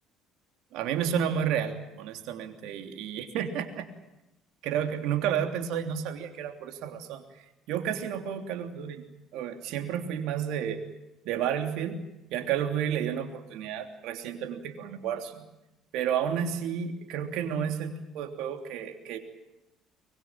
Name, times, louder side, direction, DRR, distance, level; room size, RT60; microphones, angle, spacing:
voice 1, 0.7-3.8 4.7-7.2 7.7-9.0 9.3-10.8 11.2-12.0 12.3-15.4 15.9-19.2, right 8 dB, 65° right, 5 dB, 3.1 m, -31 dB
24.0 x 22.5 x 9.1 m, 0.94 s
hypercardioid pair, 60°, 0 cm